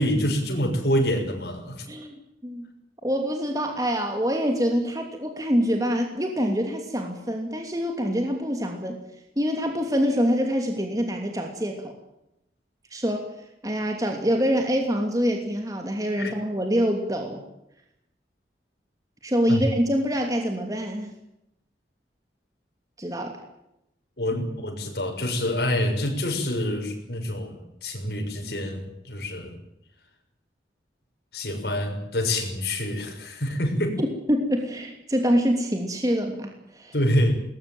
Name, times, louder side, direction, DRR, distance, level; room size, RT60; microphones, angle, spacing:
voice 1, 0.0-1.9 16.2-16.3 19.5-19.7 24.2-29.6 31.3-34.0 36.9-37.3, left 1 dB, 65° left, 3 dB, 6.8 m, -26 dB
voice 2, 3.0-9.0 9.4-11.9 12.9-13.3 13.6-17.4 19.2-21.1 23.0-23.4 34.0-36.9, equal, 20° right, 3 dB, 2.9 m, -25 dB
22.0 x 20.5 x 9.2 m, 0.86 s
head